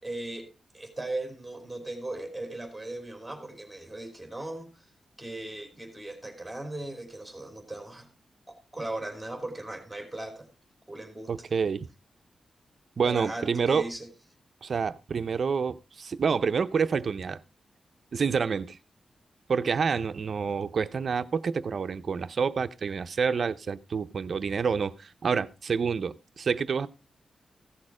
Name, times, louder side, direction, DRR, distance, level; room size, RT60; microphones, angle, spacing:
voice 1, 0.0-4.9 5.2-8.1 8.5-10.5 10.9-11.3 13.0-14.1, right 2 dB, 5° right, 3.0 m, -38 dB
voice 2, 11.3-11.9 13.0-13.9 14.6-17.4 18.1-18.8 19.5-26.9, right 6 dB, 55° right, 0.7 m, -28 dB
15.5 x 6.6 x 4.8 m
wide cardioid pair, 135°, 0 cm